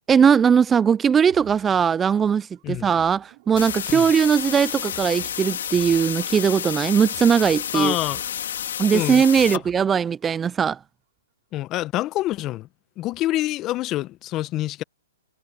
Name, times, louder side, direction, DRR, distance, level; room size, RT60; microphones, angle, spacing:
voice 1, 0.1-8.0 8.8-10.8, right 7 dB, 15° right, 0.4 m, -19 dB
sound 1, 1.3-10.3, right 24 dB, 45° right, 6.8 m, -50 dB
sound 2, 3.6-9.6, left 9 dB, 65° left, 2.6 m, -30 dB
voice 2, 7.7-8.2 8.9-9.2 11.5-12.7 13.0-14.8, left 15 dB, 30° left, 0.8 m, -26 dB
hypercardioid pair, 130°, 0 cm